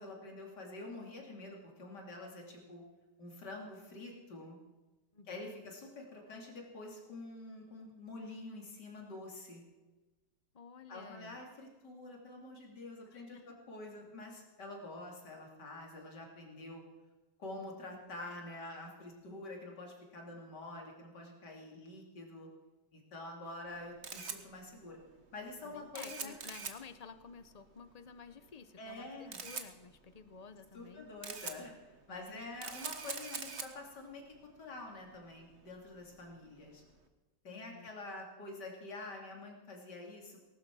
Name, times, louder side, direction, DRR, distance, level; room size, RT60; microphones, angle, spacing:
voice 1, 0.0-2.8 3.2-4.6 5.3-9.6 10.9-16.8 17.4-22.5 22.9-25.0 25.3-26.4 28.8-29.4 30.7-34.2 34.6-36.8 37.4-40.4, left 2 dB, 70° left, 0 dB, 3.6 m, -47 dB
voice 2, 5.1-5.7 10.5-11.4 13.1-13.6 25.6-31.1 32.1-32.5 37.5-37.9, left 5 dB, 45° left, 11 dB, 0.5 m, -53 dB
Camera, 23.7-37.0, right 5 dB, 40° right, 1.4 m, -47 dB
19.0 x 12.0 x 6.2 m, 1.2 s
omnidirectional pair, 1.9 m